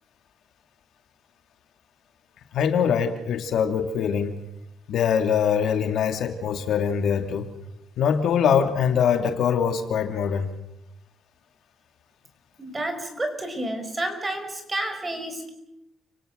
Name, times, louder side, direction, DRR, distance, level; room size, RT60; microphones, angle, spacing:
voice 1, 2.5-4.3 4.9-7.5 8.0-10.5, left 7 dB, 75° left, 7 dB, 2.3 m, -23 dB
voice 2, 12.6-15.5, right 1 dB, 20° right, 7 dB, 5.4 m, -30 dB
30.0 x 18.0 x 6.7 m, 0.83 s
cardioid pair, 90°, 0 cm